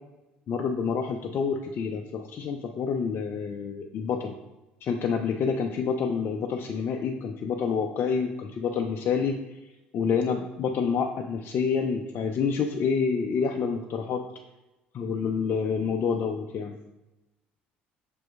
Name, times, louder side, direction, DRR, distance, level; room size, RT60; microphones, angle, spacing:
voice 1, 0.5-4.3 4.8-9.4 9.9-14.2 14.9-16.7, left 6 dB, 45° left, 4 dB, 0.5 m, -28 dB
7.5 x 6.2 x 2.3 m, 1.0 s
figure-of-eight pair, 60°, 6 cm